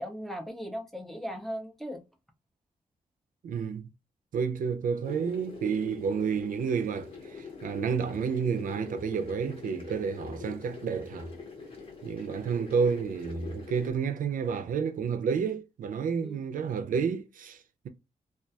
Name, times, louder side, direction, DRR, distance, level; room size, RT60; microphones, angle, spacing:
voice 1, 0.0-2.0 16.2-16.4, equal, ahead, 0.4 m, -37 dB
voice 2, 3.4-3.9 4.3-11.3 12.0-17.9, right 6 dB, 75° right, 0.4 m, -30 dB
sound 1, 5.0-13.9, left 5 dB, 40° left, 0.8 m, -43 dB
2.3 x 2.2 x 2.6 m
wide cardioid pair, 145°, 14 cm